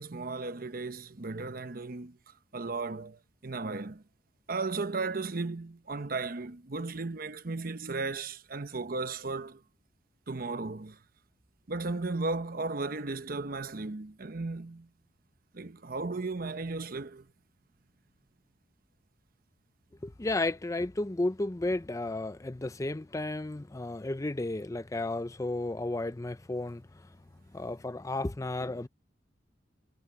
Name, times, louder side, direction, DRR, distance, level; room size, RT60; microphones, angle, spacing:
voice 1, 0.0-2.2 2.5-4.0 4.5-9.6 10.3-11.0 11.7-14.9 15.5-17.3, right 3 dB, 55° right, 1.0 m, -35 dB
voice 2, 20.0-27.1 27.5-28.9, left 2 dB, 20° left, 0.5 m, -33 dB
head